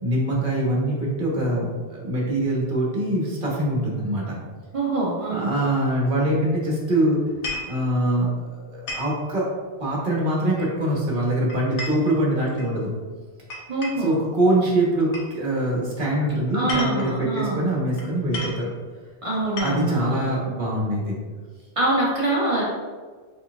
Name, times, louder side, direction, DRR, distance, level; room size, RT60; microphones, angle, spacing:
voice 1, 0.0-4.4 5.3-7.2 7.7-9.5 9.8-12.9 14.0-18.7 19.6-21.2, right 1 dB, 50° right, -4 dB, 1.2 m, -23 dB
voice 2, 4.7-5.5 13.7-14.1 16.5-17.6 19.2-20.1 21.8-22.6, right 2 dB, 30° right, -6 dB, 0.8 m, -24 dB
sound 1, 7.3-7.8 8.9-9.2 10.6-11.0 11.5-12.7 13.5-14.1 15.1-15.3 16.5-17.2 18.0-18.1 18.3-18.6 19.3-20.0, left 2 dB, 90° left, 1.1 m, -33 dB
4.3 x 4.1 x 2.3 m, 1.5 s
omnidirectional pair, 1.2 m